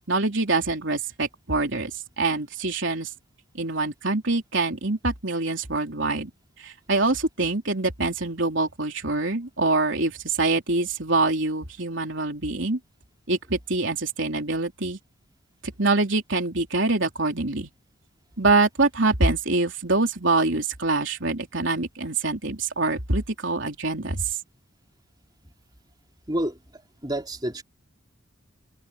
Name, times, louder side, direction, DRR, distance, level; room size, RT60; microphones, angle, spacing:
voice 1, 0.1-3.1 3.5-6.3 6.6-12.8 13.3-15.0 15.6-17.7 18.4-24.4, right 3 dB, 60° right, 3.8 m, -25 dB
voice 2, 26.3-26.6 27.0-27.6, right 1 dB, 20° right, 4.0 m, -28 dB
head